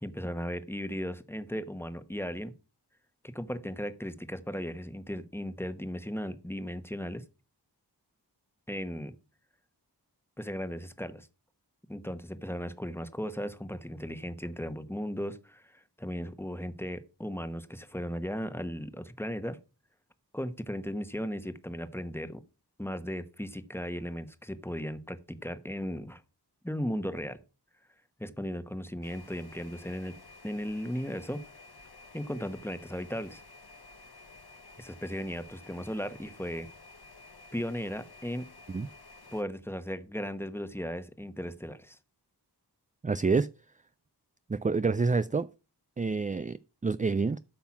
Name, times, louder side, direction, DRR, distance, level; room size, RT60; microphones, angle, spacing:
voice 1, 0.0-2.5 3.2-7.2 8.7-9.1 10.4-11.3 11.9-19.6 20.3-22.4 22.8-26.2 26.6-27.4 28.2-30.2 30.4-31.4 32.1-33.4 34.8-36.7 37.5-38.5 39.3-42.0, equal, 5° left, 1.1 m, -36 dB
sound 1, 29.0-39.4, left 3 dB, 65° left, 1.0 m, -52 dB
voice 2, 43.0-43.5 44.5-45.5 46.0-47.4, right 4 dB, 20° right, 0.3 m, -28 dB
8.6 x 5.7 x 5.9 m
wide cardioid pair, 50°, 41 cm